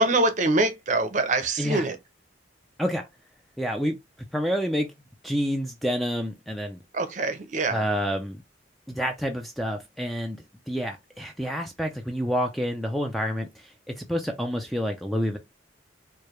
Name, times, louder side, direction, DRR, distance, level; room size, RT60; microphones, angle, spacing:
voice 1, 0.0-2.0 6.9-7.9, right 2 dB, 40° right, 0.6 m, -24 dB
voice 2, 3.6-4.0 4.3-4.9 5.2-6.8 7.7-8.4 8.9-15.4, equal, ahead, 0.3 m, -28 dB
4.7 x 2.2 x 3.0 m
head